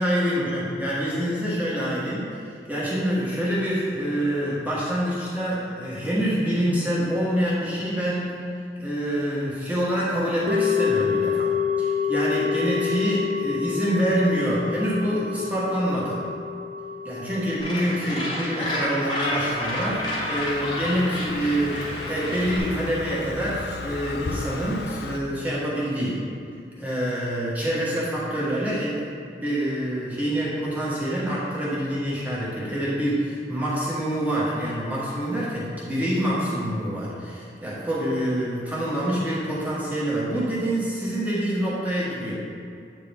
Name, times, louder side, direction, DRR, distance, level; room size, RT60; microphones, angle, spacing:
voice 1, 0.0-2.3 2.7-8.3 8.8-11.5 11.8-16.2 17.0-26.2 26.8-29.0 29.3-42.4, equal, 10° right, -8 dB, 1.3 m, -26 dB
sound 1, 10.5-20.8 21.0-21.1, left 7 dB, 60° right, 0.5 m, -28 dB
Gull seagull, 17.6-22.6, left 1 dB, 25° left, 1.0 m, -30 dB
Car passing by, 19.1-25.2, left 3 dB, 65° left, 0.3 m, -36 dB
8.5 x 3.8 x 3.4 m, 2.4 s
head